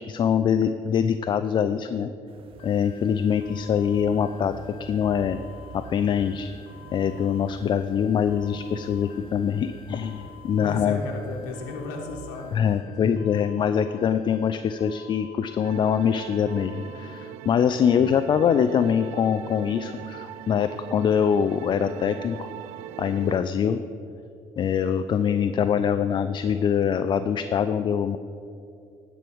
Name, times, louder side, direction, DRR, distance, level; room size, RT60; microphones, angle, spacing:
voice 1, 0.0-2.1 2.6-4.5 4.8-5.4 5.7-6.5 6.9-11.0 12.5-22.5 23.0-23.8 24.6-28.2, left 8 dB, 45° left, 11 dB, 0.4 m, -24 dB
sound 1, 2.3-12.6, right 3 dB, 55° right, 1.0 m, -47 dB
sound 2, 2.6-17.2, left 8 dB, 65° left, 1.6 m, -50 dB
voice 2, 10.6-12.9 17.7-18.2 23.8-23.9 25.4-25.5, left 3 dB, 90° left, 0 dB, 1.2 m, -36 dB
sound 3, 15.6-23.4, right 12 dB, 80° right, 0.4 m, -40 dB
10.5 x 4.6 x 7.8 m, 2.5 s
supercardioid pair, 75°, 11 cm